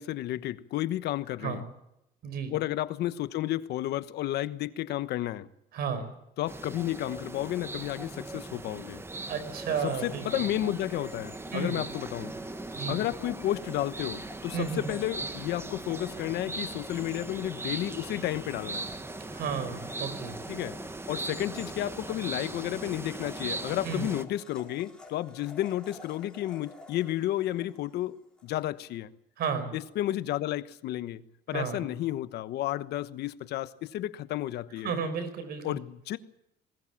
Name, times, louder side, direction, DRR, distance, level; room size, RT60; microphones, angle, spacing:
voice 1, 0.0-1.6 2.5-5.5 6.4-9.0 9.8-12.3 12.9-18.9 20.5-20.8 21.1-29.1 29.7-31.2 31.5-34.9 35.6-36.2, left 14 dB, 75° left, 1.1 m, -32 dB
voice 2, 2.2-2.5 5.7-6.1 9.3-10.4 11.5-11.8 12.8-13.0 14.5-14.9 19.3-20.4 23.8-24.1 29.4-29.7 31.5-31.8 34.8-35.8, right 6 dB, 65° right, 5.3 m, -32 dB
sound 1, 6.5-24.2, right 2 dB, 15° right, 1.3 m, -39 dB
Domestic sounds home sounds, 9.7-28.5, left 3 dB, 5° left, 5.5 m, -52 dB
20.0 x 19.0 x 7.3 m
cardioid pair, 110°, 17 cm